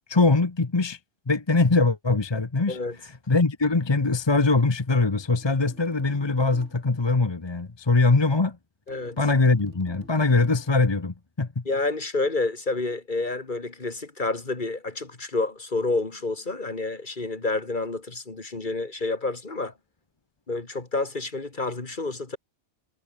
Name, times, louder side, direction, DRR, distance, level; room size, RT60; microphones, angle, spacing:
voice 1, 0.1-1.0 1.3-2.8 3.3-8.6 9.2-11.6, left 3 dB, 25° left, 1.0 m, -22 dB
sound 1, 4.9-7.0 8.9-10.9, right 2 dB, 80° right, 4.7 m, -51 dB
voice 2, 11.7-19.7 20.5-22.4, left 3 dB, 40° left, 2.4 m, -29 dB
omnidirectional pair, 1.2 m